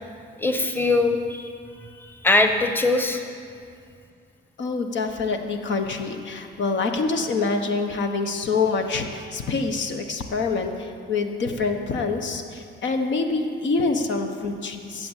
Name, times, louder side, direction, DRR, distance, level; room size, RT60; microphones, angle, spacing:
voice 1, 0.4-1.5 2.0-3.2, left 2 dB, 10° left, 5 dB, 1.1 m, -21 dB
voice 2, 4.6-15.1, left 4 dB, 70° left, 5 dB, 1.3 m, -26 dB
14.5 x 7.7 x 8.3 m, 2.3 s
cardioid pair, 90°, 20 cm